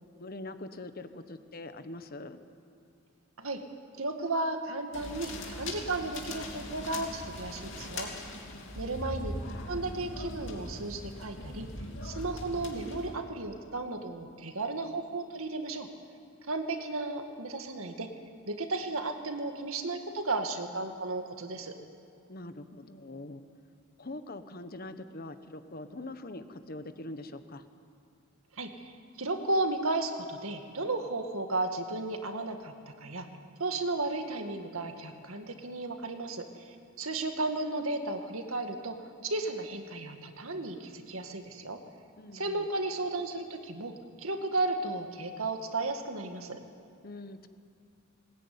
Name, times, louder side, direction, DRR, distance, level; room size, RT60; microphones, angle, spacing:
voice 1, 0.2-2.4 8.5-8.7 22.3-23.4 24.0-27.6 42.2-42.7 47.0-47.5, left 2 dB, 45° left, 10 dB, 1.1 m, -43 dB
voice 2, 4.0-8.1 8.8-9.3 9.7-11.7 12.0-15.9 16.5-18.1 18.5-21.7 28.5-32.7 33.0-33.3 33.6-39.0 39.2-41.8 42.3-46.6, right 2 dB, 80° right, 5 dB, 2.0 m, -34 dB
sound 1, 4.9-13.1, left 1 dB, 60° left, 3.2 m, -40 dB
20.0 x 19.5 x 9.6 m, 2.5 s
head